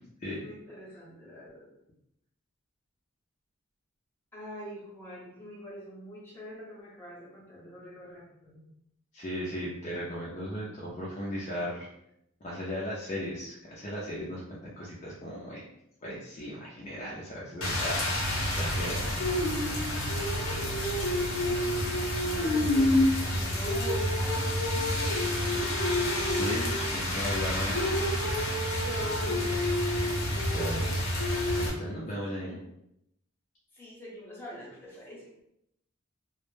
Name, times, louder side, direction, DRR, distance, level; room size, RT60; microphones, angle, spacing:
voice 1, 0.4-1.7 4.3-8.8 20.5-25.9 28.8-30.1 32.2-32.6 33.7-35.3, equal, 10° left, -6 dB, 0.8 m, -45 dB
voice 2, 9.1-11.9 12.4-15.6 16.0-19.1 26.3-27.8 30.5-31.0 31.5-32.6, equal, 35° left, -6 dB, 0.4 m, -36 dB
Rain, 17.6-31.7, left 1 dB, 75° left, 0.6 m, -28 dB
2.1 x 2.0 x 3.1 m, 0.79 s
head